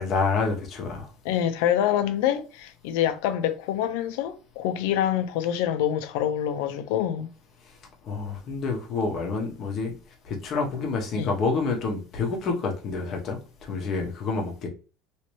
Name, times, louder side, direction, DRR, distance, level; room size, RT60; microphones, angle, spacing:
voice 1, 0.0-1.1 8.0-9.9 10.2-14.7, left 4 dB, 35° left, 1.0 m, -28 dB
voice 2, 1.2-7.3 11.1-11.3, left 10 dB, 75° left, 0.6 m, -26 dB
3.2 x 2.9 x 3.1 m
cardioid pair, 165°, 0 cm